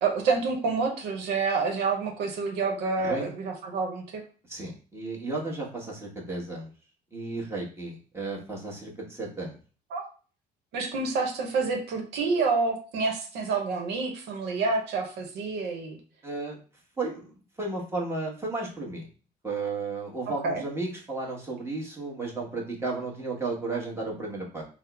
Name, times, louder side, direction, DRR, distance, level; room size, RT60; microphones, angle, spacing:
voice 1, 0.0-4.2 9.9-10.0 10.7-16.0 20.4-20.6, right 4 dB, 80° right, 2 dB, 0.8 m, -28 dB
voice 2, 4.5-6.7 7.1-9.5 16.2-16.6 17.0-17.3 17.6-19.0 19.4-24.6, right 3 dB, 15° right, -3 dB, 1.1 m, -33 dB
3.5 x 2.0 x 3.3 m, 0.38 s
cardioid pair, 110°, 17 cm